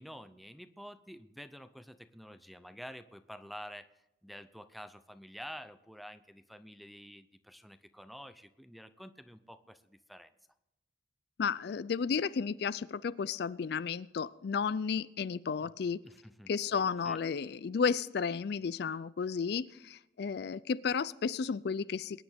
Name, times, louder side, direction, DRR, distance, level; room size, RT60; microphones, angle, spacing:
voice 1, 0.0-10.3 16.0-17.2, equal, ahead, 12 dB, 0.5 m, -49 dB
voice 2, 11.4-16.0 16.5-22.2, left 6 dB, 55° left, 17 dB, 0.4 m, -33 dB
22.5 x 10.0 x 3.6 m, 0.89 s
head